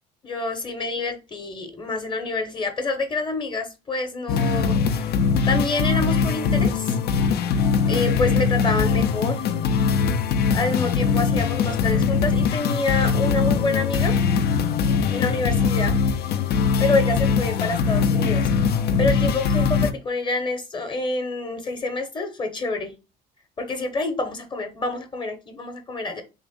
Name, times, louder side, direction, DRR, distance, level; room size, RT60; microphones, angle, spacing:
voice 1, 0.2-5.1 5.5-7.0 7.9-9.5 10.5-14.2 15.1-16.0 16.8-18.5 19.0-22.9 23.6-26.2, left 3 dB, 30° left, 0.8 m, -27 dB
sound 1, 4.3-19.9, left 5 dB, 70° left, 0.5 m, -21 dB
3.5 x 2.5 x 3.5 m
cardioid pair, 110°, 17 cm